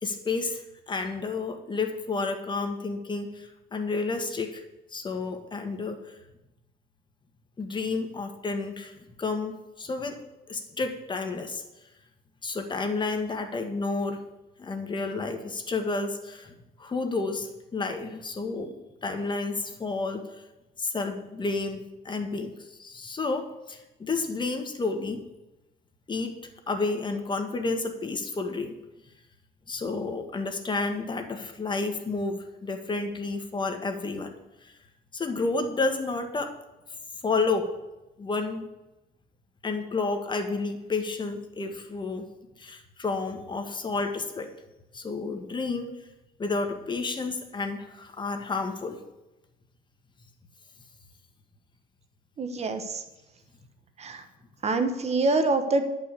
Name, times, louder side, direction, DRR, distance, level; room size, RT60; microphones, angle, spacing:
voice 1, 0.0-4.6 4.9-6.1 7.6-10.2 10.5-11.6 12.4-14.2 14.6-16.5 16.8-18.7 19.0-20.4 20.8-25.2 26.1-26.3 26.7-28.7 29.7-34.3 34.6-34.7 35.1-36.6 37.2-37.7 38.2-38.6 39.6-42.3 42.6-44.5 44.9-45.9 46.4-49.0, left 3 dB, 30° left, 6 dB, 1.6 m, -31 dB
voice 2, 52.4-53.0 54.0-54.2 54.6-55.9, right 3 dB, 40° right, 8 dB, 1.3 m, -25 dB
11.0 x 5.6 x 8.3 m, 0.99 s
cardioid pair, 110°, 17 cm